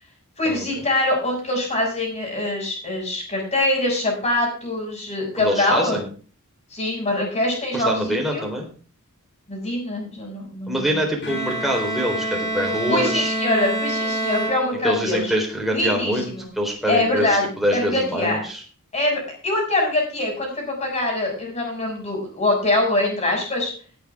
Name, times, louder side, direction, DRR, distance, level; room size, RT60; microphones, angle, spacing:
voice 1, 0.4-6.0 6.7-8.4 9.5-10.9 12.9-15.3 15.7-16.5 16.8-18.4 18.9-23.7, left 2 dB, 30° left, 1 dB, 6.8 m, -24 dB
voice 2, 5.4-6.1 7.7-8.7 10.7-13.3 14.8-16.3 16.6-18.6, equal, ahead, -1 dB, 4.0 m, -24 dB
Bowed string instrument, 11.2-15.2, right 1 dB, 55° left, 3.2 m, -27 dB
18.0 x 8.7 x 3.6 m, 0.40 s
head